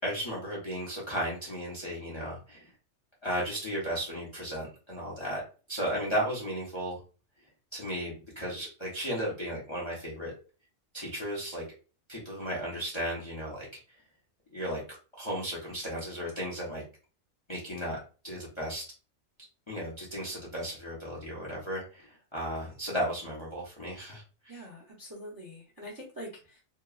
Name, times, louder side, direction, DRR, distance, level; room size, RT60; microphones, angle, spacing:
voice 1, 0.0-2.7 3.2-5.4 5.7-7.0 7.7-10.3 10.9-11.6 12.1-13.7 14.5-14.8 15.2-16.8 17.5-18.0 18.2-18.9 19.7-24.2, equal, 30° left, -4 dB, 0.6 m, -35 dB
voice 2, 24.5-26.6, equal, 25° right, -3 dB, 0.6 m, -44 dB
2.9 x 2.3 x 2.3 m, 0.35 s
omnidirectional pair, 1.4 m